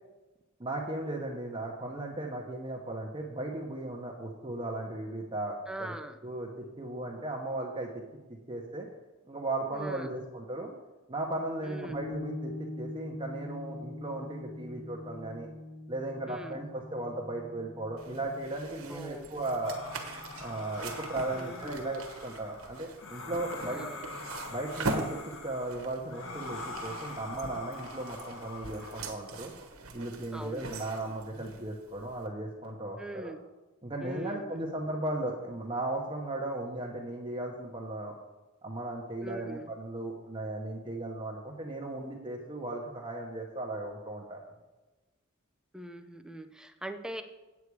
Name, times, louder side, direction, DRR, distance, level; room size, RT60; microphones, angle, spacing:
voice 1, 0.6-5.9 6.2-6.5 6.8-8.0 8.3-8.9 9.3-10.7 11.1-15.5 15.9-19.8 20.4-23.9 24.5-29.5 29.9-33.3 33.8-38.1 38.6-44.4, right 2 dB, 25° right, -1 dB, 1.0 m, -36 dB
voice 2, 5.7-6.2 9.7-10.1 11.6-12.0 16.3-16.6 18.9-19.3 21.3-21.8 23.6-24.0 30.3-30.6 33.0-33.4 34.0-34.7 39.2-39.7 45.7-47.2, right 1 dB, 5° right, 7 dB, 0.6 m, -42 dB
sound 1, 11.9-21.6, left 2 dB, 45° right, 1.2 m, -44 dB
sound 2, 18.0-32.3, right 2 dB, 85° right, 1.2 m, -42 dB
sound 3, 19.6-29.1, left 2 dB, 70° left, 1.3 m, -43 dB
8.4 x 8.4 x 4.7 m, 1.2 s
head